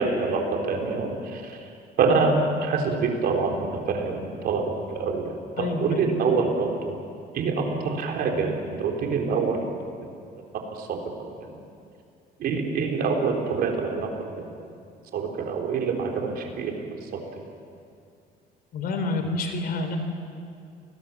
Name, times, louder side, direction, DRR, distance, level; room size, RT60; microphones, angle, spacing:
voice 1, 0.0-1.7 2.0-6.9 7.3-9.7 10.7-11.6 12.4-14.5 15.1-17.4, right 4 dB, 65° right, 2 dB, 4.1 m, -26 dB
voice 2, 5.6-6.1 18.7-20.0, left 3 dB, 60° left, 6 dB, 4.1 m, -28 dB
29.5 x 20.5 x 7.6 m, 2.4 s
cardioid pair, 110°, 17 cm